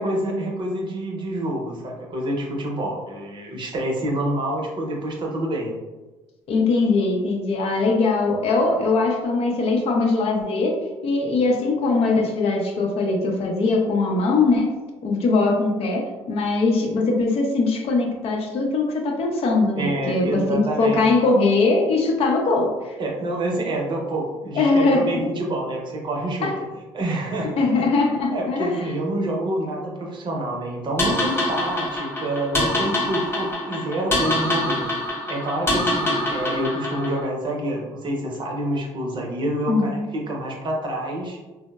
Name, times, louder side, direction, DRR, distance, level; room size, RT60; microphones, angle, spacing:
voice 1, 0.0-5.7 19.8-21.1 23.0-26.5 26.9-27.8 28.3-34.9 35.3-41.4, right 1 dB, 40° right, 0 dB, 0.7 m, -27 dB
voice 2, 6.5-14.7 15.0-23.0 24.5-25.3 26.4-26.6 27.6-28.7 39.7-40.0, left 3 dB, 60° left, 1 dB, 0.5 m, -21 dB
sound 1, 31.0-37.2, left 1 dB, 20° left, 0.7 m, -25 dB
2.9 x 2.0 x 2.2 m, 1.2 s
supercardioid pair, 75°, 12 cm